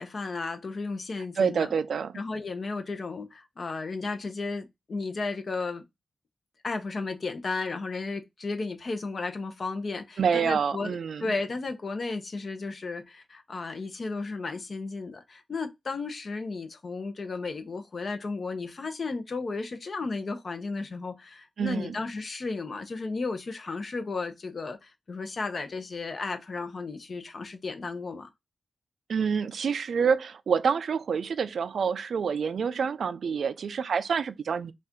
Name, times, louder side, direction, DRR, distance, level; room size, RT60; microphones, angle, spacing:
voice 1, 0.0-1.7 2.1-5.8 6.6-28.3, left 3 dB, 55° left, 0.8 m, -34 dB
voice 2, 1.4-2.1 10.2-11.3 21.6-22.0 29.1-34.7, right 6 dB, 85° right, 0.3 m, -27 dB
4.2 x 2.5 x 3.6 m
wide cardioid pair, 110°, 0 cm